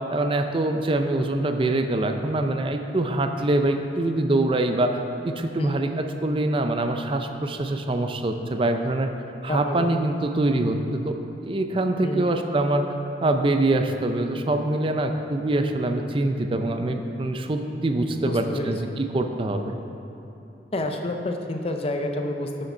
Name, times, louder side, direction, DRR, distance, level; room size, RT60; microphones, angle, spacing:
voice 1, 0.1-5.0 5.2-9.1 9.4-10.8 11.1-11.2 11.4-12.8 13.2-19.8, right 2 dB, 30° right, 6 dB, 0.4 m, -24 dB
voice 2, 9.5-9.9 12.0-12.3 18.3-18.7 20.7-22.7, left 1 dB, 35° left, 4 dB, 0.6 m, -29 dB
7.1 x 6.5 x 5.4 m, 2.9 s
head